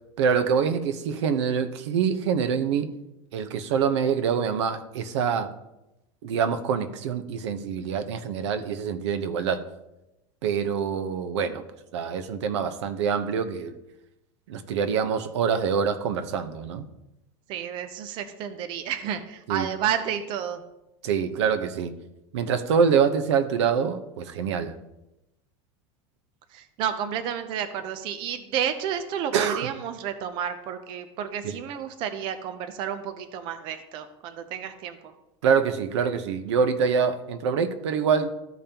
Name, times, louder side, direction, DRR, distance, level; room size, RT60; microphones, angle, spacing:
voice 1, 0.2-2.9 3.3-5.5 6.2-9.6 10.4-11.6 11.9-13.8 14.5-16.9 19.5-19.7 21.0-21.9 22.3-24.7 29.3-29.7 31.4-31.5 35.4-38.3, right 6 dB, 90° right, 9 dB, 0.9 m, -25 dB
voice 2, 17.5-20.6 26.5-35.0, right 9 dB, 35° right, 9 dB, 0.6 m, -31 dB
14.0 x 5.3 x 2.9 m, 0.92 s
supercardioid pair, 165°, 14 cm